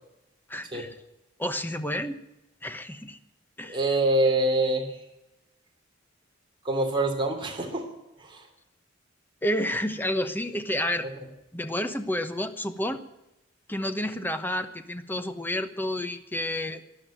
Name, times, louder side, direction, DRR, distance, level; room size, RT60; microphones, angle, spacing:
voice 1, 0.5-0.9 1.4-2.2 2.6-3.2 3.6-4.0 9.4-11.1 11.5-13.0 13.7-16.8, left 1 dB, 10° left, 9 dB, 1.1 m, -30 dB
voice 2, 3.6-5.0 6.6-7.9 8.2-8.5, right 1 dB, 25° right, 1 dB, 3.1 m, -25 dB
12.5 x 11.5 x 9.1 m, 0.93 s
head